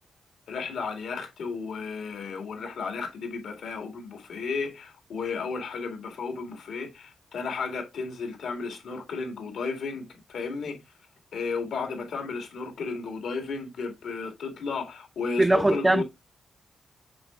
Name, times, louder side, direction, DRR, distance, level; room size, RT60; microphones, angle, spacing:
voice 1, 0.5-10.8 11.3-16.0, left 4 dB, 85° left, 2.1 m, -33 dB
voice 2, 15.4-16.0, right 1 dB, 15° right, 0.5 m, -20 dB
7.7 x 5.6 x 2.4 m
cardioid pair, 85°, 0 cm